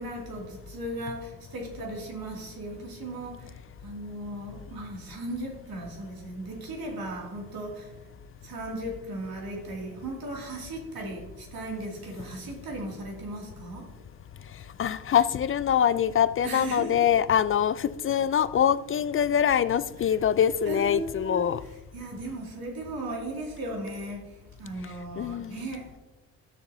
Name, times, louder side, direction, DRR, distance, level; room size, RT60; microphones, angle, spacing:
voice 1, 0.0-3.5 3.8-7.9 8.4-13.9 16.4-17.0 20.0-20.2 20.6-26.0, right 1 dB, 55° right, 2.7 m, -37 dB
voice 2, 14.8-21.6 25.2-25.6, left 9 dB, 30° left, 0.4 m, -24 dB
12.5 x 6.6 x 2.8 m
hypercardioid pair, 45°, 43 cm